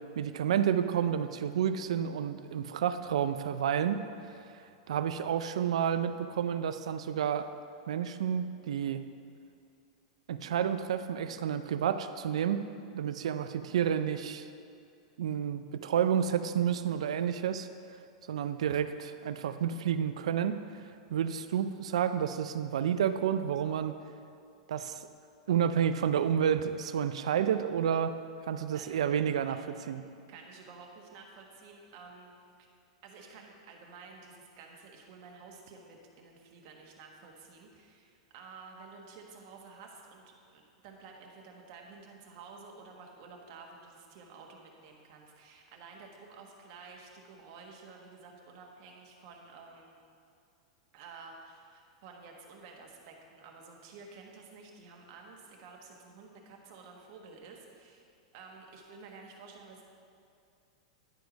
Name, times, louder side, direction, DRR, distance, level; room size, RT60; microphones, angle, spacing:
voice 1, 0.2-4.0 4.9-7.5 7.9-9.0 10.3-12.6 12.9-14.5 15.2-17.7 18.3-20.5 21.1-23.9 24.7-25.0 25.5-28.1 28.5-29.6 29.9-30.0, right 8 dB, 80° right, 11 dB, 0.4 m, -30 dB
voice 2, 30.3-32.3 32.6-32.7 33.0-50.0 50.9-58.1 58.3-59.9, right 4 dB, 55° right, 1 dB, 1.4 m, -51 dB
10.5 x 4.7 x 5.2 m, 2.4 s
hypercardioid pair, 125°, 3 cm